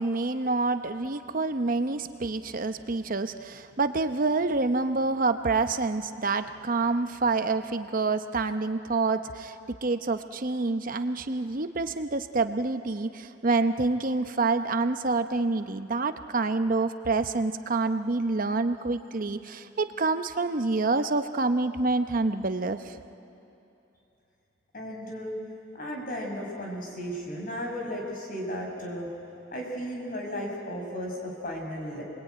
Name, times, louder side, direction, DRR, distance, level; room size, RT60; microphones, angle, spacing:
voice 1, 0.0-23.0, right 3 dB, 45° right, 9 dB, 0.8 m, -27 dB
voice 2, 24.7-25.4 25.7-29.1 29.5-32.0, equal, 50° left, 0 dB, 5.6 m, -35 dB
27.5 x 21.0 x 9.3 m, 2.9 s
head